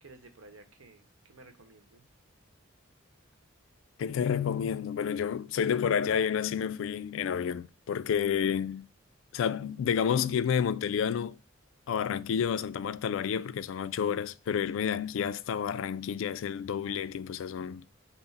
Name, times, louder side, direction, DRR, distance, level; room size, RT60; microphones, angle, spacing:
voice 1, 0.0-2.0, right 2 dB, 80° right, 0.9 m, -54 dB
voice 2, 4.0-8.9 9.3-11.4 11.9-17.8, left 7 dB, 75° left, 0.3 m, -30 dB
5.7 x 2.0 x 3.9 m
head